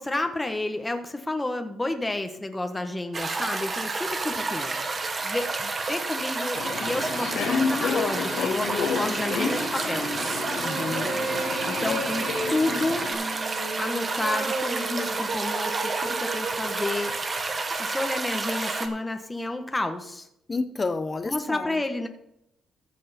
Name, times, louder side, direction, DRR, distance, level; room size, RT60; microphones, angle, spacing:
voice 1, 0.0-4.7 5.2-10.1 11.7-13.0 13.8-17.2 17.8-20.3 21.2-22.1, left 2 dB, 15° left, 6 dB, 1.3 m, -30 dB
sound 1, 3.1-18.9, right 3 dB, 35° right, 1.6 m, -30 dB
Subway metro underground, 6.5-13.1, left 5 dB, 80° left, 2.0 m, -30 dB
sound 2, 9.2-17.8, right 4 dB, 50° right, 1.4 m, -34 dB
voice 2, 10.6-11.2 20.5-21.7, left 3 dB, 30° left, 11 dB, 0.9 m, -30 dB
14.5 x 7.5 x 4.3 m, 0.79 s
cardioid pair, 90°, 0 cm